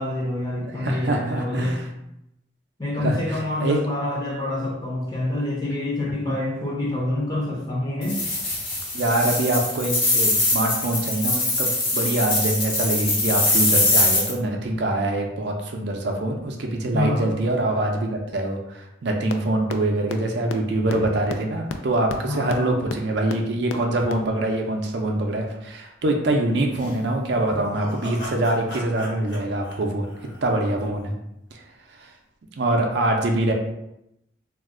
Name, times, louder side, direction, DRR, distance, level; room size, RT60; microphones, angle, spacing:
voice 1, 0.0-1.8 2.8-8.2 16.9-17.3 22.3-22.8 25.0-25.1, left 1 dB, 20° left, -4 dB, 0.7 m, -27 dB
voice 2, 0.6-1.8 3.0-3.8 8.9-30.1 30.4-31.1 31.5-31.6 32.0-32.1 32.6-33.5, right 1 dB, 60° right, 2 dB, 0.4 m, -24 dB
sound 1, 8.0-14.3, left 2 dB, 45° left, 0.9 m, -22 dB
sound 2, 19.3-19.4 19.7-19.8 20.1-20.2 20.5-20.6 20.9-21.0 21.3-21.4 21.7-21.8 22.1-22.2 22.5-22.6 22.9-23.0 23.3-23.4 23.7-23.8 24.1-24.2, left 6 dB, 90° left, 0.3 m, -29 dB
sound 3, 26.7-30.9, equal, 60° left, 1.2 m, -38 dB
2.4 x 2.2 x 3.6 m, 0.84 s
head